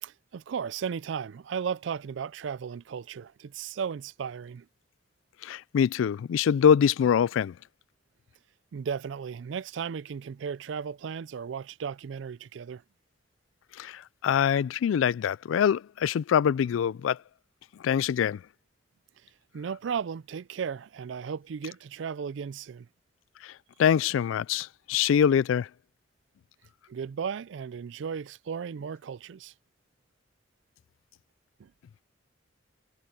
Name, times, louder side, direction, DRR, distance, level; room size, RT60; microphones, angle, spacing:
voice 1, 0.0-4.7 8.7-12.8 19.5-22.9 26.9-29.5 31.6-31.7, right 7 dB, 70° right, 0.4 m, -35 dB
voice 2, 5.4-7.5 13.8-17.2 17.8-18.4 23.4-23.5 23.8-25.7, left 8 dB, 90° left, 0.3 m, -24 dB
head